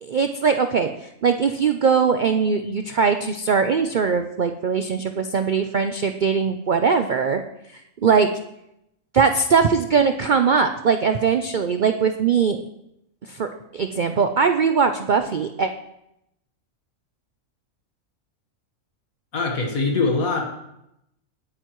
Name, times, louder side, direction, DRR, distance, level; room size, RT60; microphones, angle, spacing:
voice 1, 0.0-7.4 7.7-8.3 9.1-12.6 13.3-15.7, right 5 dB, 65° right, 7 dB, 0.4 m, -21 dB
voice 2, 19.3-20.4, left 3 dB, 75° left, 1 dB, 1.9 m, -22 dB
19.0 x 9.2 x 3.1 m, 0.84 s
omnidirectional pair, 1.5 m